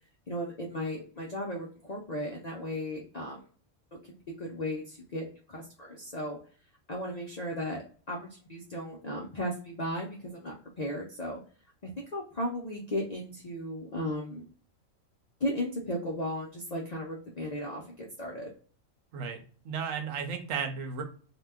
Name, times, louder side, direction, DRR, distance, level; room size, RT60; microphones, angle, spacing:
voice 1, 0.3-3.4 3.9-6.4 6.9-11.4 11.8-14.5 15.4-18.5, left 1 dB, 70° left, -2 dB, 0.4 m, -36 dB
voice 2, 19.1-21.0, right 6 dB, 70° right, 5 dB, 1.0 m, -34 dB
2.8 x 2.2 x 3.4 m, 0.42 s
omnidirectional pair, 1.4 m